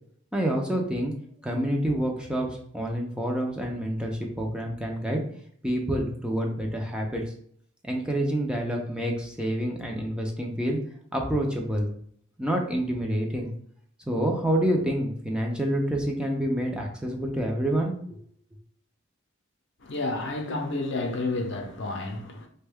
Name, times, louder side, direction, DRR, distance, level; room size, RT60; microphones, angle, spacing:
voice 1, 0.3-1.1 1.4-5.2 5.6-7.2 7.8-10.8 11.1-11.9 12.4-13.5 14.1-18.2, right 1 dB, 5° right, 0.4 m, -27 dB
voice 2, 19.8-22.5, left 2 dB, 65° left, 0.6 m, -30 dB
3.4 x 2.2 x 3.4 m
head